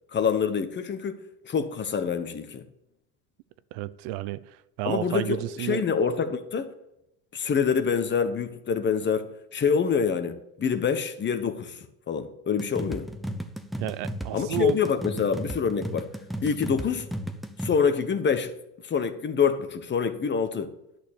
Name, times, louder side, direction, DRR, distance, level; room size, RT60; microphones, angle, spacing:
voice 1, 0.1-2.6 4.8-6.7 7.3-13.1 14.3-16.1 16.4-17.1 17.6-18.5 18.8-20.7, left 6 dB, 25° left, 1.1 m, -26 dB
voice 2, 3.7-4.4 4.8-5.8 13.8-14.8, right 14 dB, 75° right, 0.7 m, -31 dB
sound 1, 12.6-17.7, equal, ahead, 0.7 m, -35 dB
11.0 x 6.6 x 7.0 m
cardioid pair, 130°, 42 cm